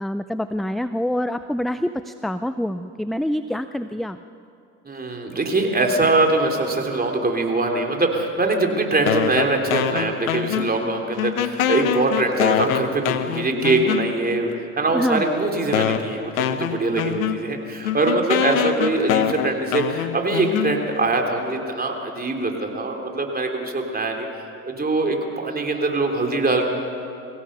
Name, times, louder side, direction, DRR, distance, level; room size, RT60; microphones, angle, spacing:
voice 1, 0.0-4.2 14.9-15.2, left 1 dB, ahead, 11 dB, 0.4 m, -26 dB
voice 2, 4.9-24.3 24.6-26.6, right 2 dB, 25° right, 2 dB, 3.5 m, -23 dB
sound 1, 9.1-10.9 11.2-14.4 15.1-15.2 15.7-21.1, left 10 dB, 85° left, 1.0 m, -25 dB
24.0 x 16.5 x 6.8 m, 2.6 s
hypercardioid pair, 65°, 40 cm